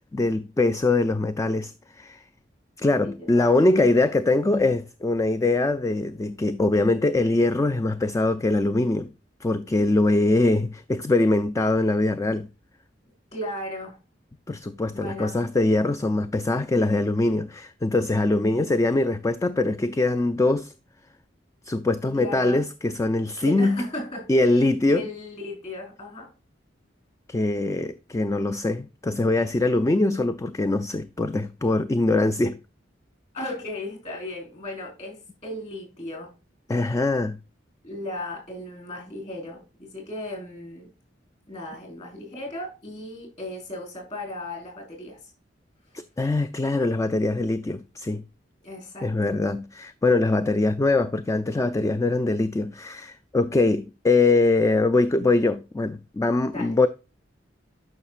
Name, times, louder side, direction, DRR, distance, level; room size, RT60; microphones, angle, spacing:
voice 1, 0.1-2.2 2.8-9.1 9.4-12.5 14.5-20.7 21.7-23.8 24.3-25.0 27.3-32.6 36.7-37.4 46.2-48.2 49.0-56.9, left 2 dB, 15° left, 0.3 m, -23 dB
voice 2, 3.0-3.8 13.3-14.0 14.9-15.4 22.1-22.6 23.4-24.3 24.9-26.3 33.3-35.2 35.4-36.3 37.8-40.9 41.5-45.2 48.6-49.3 56.5-56.7, left 1 dB, 35° left, 4.3 m, -36 dB
11.0 x 5.7 x 2.4 m
head